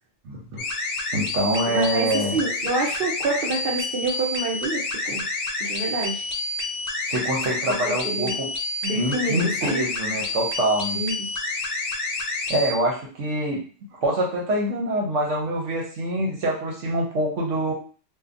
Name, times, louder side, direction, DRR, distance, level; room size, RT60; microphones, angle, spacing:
voice 1, 0.2-0.6 1.1-2.4 7.1-8.5 8.9-11.0 12.5-13.6 13.9-17.7, right 1 dB, 80° right, -2 dB, 1.1 m, -25 dB
sound 1, 0.6-12.7, left 2 dB, 70° left, 0.8 m, -29 dB
voice 2, 1.7-5.2 5.6-6.3 7.8-8.4 8.8-9.8 10.9-11.3, right 2 dB, 55° right, -3 dB, 0.8 m, -27 dB
2.8 x 2.3 x 2.5 m, 0.39 s
omnidirectional pair, 1.3 m